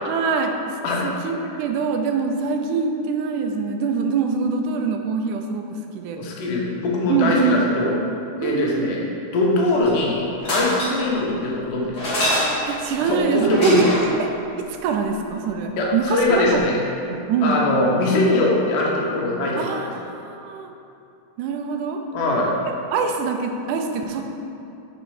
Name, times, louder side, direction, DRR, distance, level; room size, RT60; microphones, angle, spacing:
voice 1, 0.1-6.2 7.1-7.6 8.4-8.9 10.8-11.0 12.7-14.3 14.6-17.7 19.6-20.7 21.4-22.0 22.9-24.2, right 5 dB, 80° right, 4 dB, 2.0 m, -24 dB
voice 2, 6.1-8.0 8.4-9.0 9.3-12.2 13.0-13.8 15.8-16.8 17.4-19.6 22.1-22.5, left 2 dB, 80° left, -3 dB, 2.5 m, -22 dB
sound 1, 9.6-10.0 10.4-11.1 12.0-12.8 13.5-14.2 16.3-16.4 16.5-16.6, equal, 45° left, 1.4 m, -25 dB
6.2 x 4.4 x 4.8 m, 2.7 s
omnidirectional pair, 3.6 m